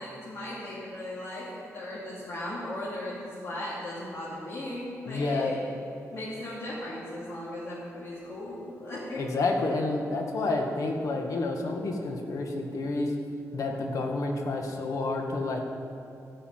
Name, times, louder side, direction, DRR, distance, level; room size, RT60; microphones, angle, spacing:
voice 1, 0.0-5.6 6.1-9.2, left 1 dB, 55° left, -7 dB, 2.6 m, -37 dB
voice 2, 5.0-5.5 9.1-13.1 13.5-15.6, left 2 dB, 70° left, 2 dB, 1.5 m, -29 dB
13.5 x 5.7 x 9.1 m, 2.8 s
wide cardioid pair, 140°, 6 cm